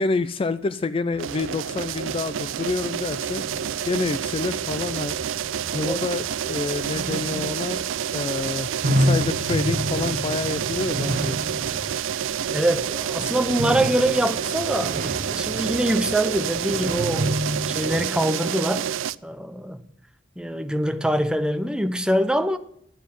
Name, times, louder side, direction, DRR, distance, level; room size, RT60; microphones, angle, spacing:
voice 1, 0.0-3.4 3.9-5.2 5.7-7.9 8.1-11.4, left 3 dB, 30° left, 0.3 m, -28 dB
sound 1, 1.1-18.0, right 1 dB, 50° right, 0.8 m, -31 dB
sound 2, 1.2-19.1, right 9 dB, 90° right, 0.4 m, -28 dB
voice 2, 12.5-14.9 15.3-17.3 17.7-18.9 19.2-19.8 20.4-22.6, right 1 dB, 5° right, 0.6 m, -24 dB
11.5 x 7.2 x 5.3 m
head